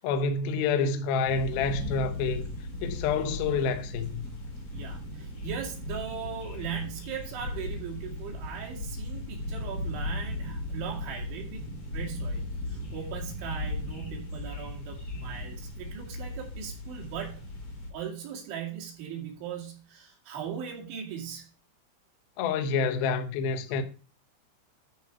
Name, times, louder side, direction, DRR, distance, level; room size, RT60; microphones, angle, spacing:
voice 1, 0.0-2.4 2.8-4.3 22.4-23.8, left 5 dB, 90° left, 2.1 m, -28 dB
sound 1, 1.3-17.9, left 1 dB, 35° left, 2.8 m, -37 dB
voice 2, 4.7-12.4 12.7-17.5 17.9-21.5, right 8 dB, 65° right, 4.4 m, -39 dB
13.0 x 4.7 x 4.7 m
omnidirectional pair, 5.9 m